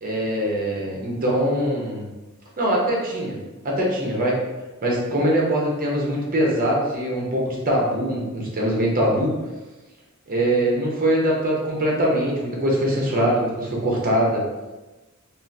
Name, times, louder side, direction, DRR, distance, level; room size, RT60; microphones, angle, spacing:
voice 1, 0.0-2.1 2.6-3.4 3.6-4.4 4.8-9.3 10.3-14.4, right 1 dB, 45° right, -3 dB, 0.7 m, -22 dB
3.5 x 2.4 x 2.6 m, 1.1 s
head